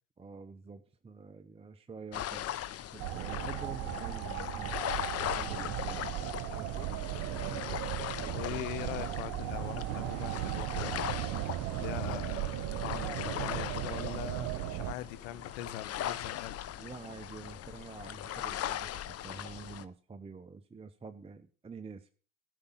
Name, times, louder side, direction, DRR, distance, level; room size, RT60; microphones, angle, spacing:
voice 1, 0.2-4.8 5.2-6.0 6.5-7.7 8.2-8.6 16.8-22.1, right 4 dB, 15° right, 0.7 m, -48 dB
sound 1, 2.1-19.8, left 11 dB, 35° left, 0.7 m, -39 dB
sound 2, 2.3-18.5, left 1 dB, 10° left, 3.7 m, -61 dB
sound 3, 3.0-14.9, right 18 dB, 55° right, 0.5 m, -36 dB
voice 2, 8.3-16.6, left 13 dB, 75° left, 0.9 m, -42 dB
13.5 x 5.1 x 5.6 m
hypercardioid pair, 75°, 40 cm